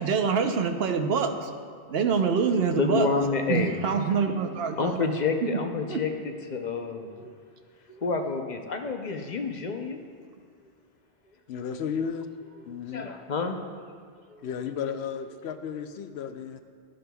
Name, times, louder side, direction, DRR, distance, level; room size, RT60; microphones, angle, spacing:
voice 1, 0.0-1.5 1.9-3.1 3.5-5.1 5.4-5.5 5.9-6.0, right 5 dB, 70° right, 6 dB, 0.9 m, -25 dB
voice 2, 2.8-4.1 4.8-7.3 7.9-10.0 12.9-13.6 14.3-14.5, left 4 dB, 50° left, 4 dB, 0.7 m, -29 dB
voice 3, 11.5-12.3 12.6-13.1 14.4-16.6, left 7 dB, 85° left, 9 dB, 0.8 m, -33 dB
12.0 x 10.0 x 2.3 m, 2.2 s
omnidirectional pair, 1.1 m